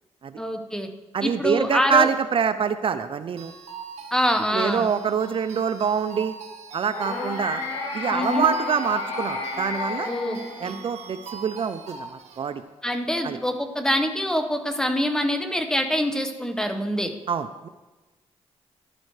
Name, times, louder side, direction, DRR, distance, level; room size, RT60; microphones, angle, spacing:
voice 1, 0.4-0.9 1.2-2.1 4.1-4.9 8.1-8.4 10.1-10.8 12.8-17.1, equal, 5° left, 5 dB, 1.2 m, -25 dB
voice 2, 1.1-3.5 4.5-6.3 6.7-7.6 7.9-10.1 10.6-12.6 13.2-13.4 17.3-17.7, right 7 dB, 55° right, 11 dB, 0.5 m, -25 dB
sound 1, 3.4-12.4, right 6 dB, 85° right, 1.5 m, -42 dB
sound 2, 6.9-11.1, left 3 dB, 85° left, 5.0 m, -30 dB
15.0 x 11.5 x 3.2 m, 1.2 s
cardioid pair, 95°, 11 cm